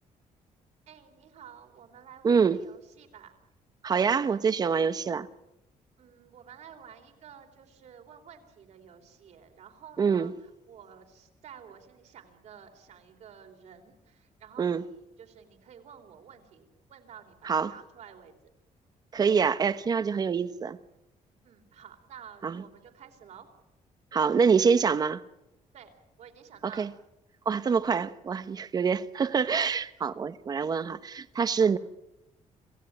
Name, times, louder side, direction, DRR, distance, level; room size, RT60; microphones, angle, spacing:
voice 1, 0.9-3.3 6.0-18.3 21.4-23.5 25.7-26.9 28.7-28.9 31.6-31.7, right 8 dB, 60° right, 3.8 m, -51 dB
voice 2, 2.2-2.6 3.8-5.3 10.0-10.3 14.6-14.8 17.4-17.7 19.1-20.8 22.4-22.6 24.1-25.2 26.6-26.9 27.5-31.8, right 6 dB, 30° right, 0.9 m, -25 dB
27.5 x 17.5 x 8.9 m
cardioid pair, 180°, 13 cm